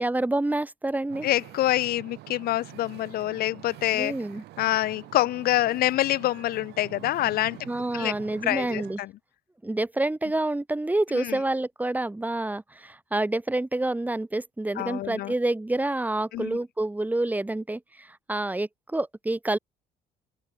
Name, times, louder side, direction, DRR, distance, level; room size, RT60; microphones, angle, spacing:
voice 1, 0.0-1.3 3.9-4.4 7.7-9.0 9.6-19.6, right 2 dB, 10° right, 3.1 m, -28 dB
Wind / Ocean, 1.1-9.0, right 17 dB, 80° right, 6.6 m, -46 dB
voice 2, 1.2-4.1 4.6-7.6 7.9-8.1 8.4-9.1 11.1-11.4 14.8-15.3 16.3-16.6, left 15 dB, 65° left, 0.6 m, -26 dB
open air
cardioid pair, 110°, 17 cm